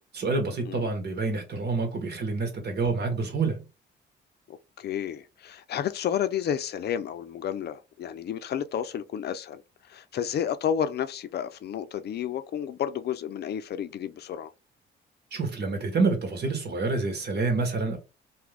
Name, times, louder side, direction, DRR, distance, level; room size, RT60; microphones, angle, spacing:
voice 1, 0.1-3.6 15.3-18.0, right 3 dB, 55° right, 1.3 m, -27 dB
voice 2, 4.5-9.6 9.9-14.5, left 9 dB, 55° left, 0.5 m, -31 dB
2.7 x 2.4 x 3.4 m
cardioid pair, 90°, 20 cm